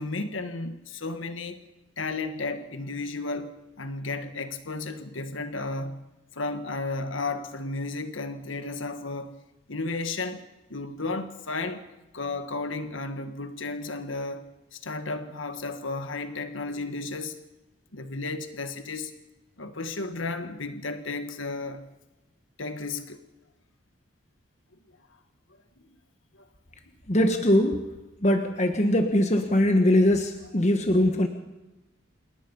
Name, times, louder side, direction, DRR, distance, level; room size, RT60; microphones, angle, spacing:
voice 1, 0.0-1.6 2.0-6.0 6.3-9.3 9.7-10.4 10.7-11.8 12.1-14.4 14.8-17.4 17.9-19.1 19.6-21.8 22.6-23.2, left 3 dB, 80° left, 9 dB, 1.6 m, -33 dB
voice 2, 27.1-27.8 28.2-31.3, left 1 dB, 35° left, 5 dB, 1.5 m, -21 dB
28.0 x 18.0 x 5.5 m, 1.0 s
head